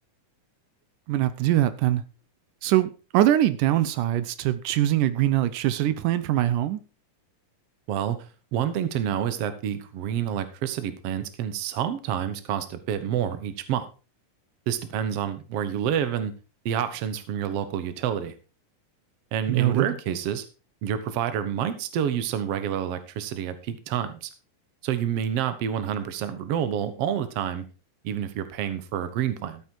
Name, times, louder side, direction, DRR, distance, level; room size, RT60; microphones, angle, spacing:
voice 1, 1.1-2.0 2.6-6.8 19.5-20.0, right 13 dB, 85° right, 2.4 m, -23 dB
voice 2, 8.5-13.9 14.7-16.3 16.7-18.3 19.3-20.5 20.8-24.3 24.8-27.7 28.0-29.6, right 9 dB, 60° right, 2.0 m, -28 dB
13.0 x 8.4 x 4.6 m
omnidirectional pair, 3.6 m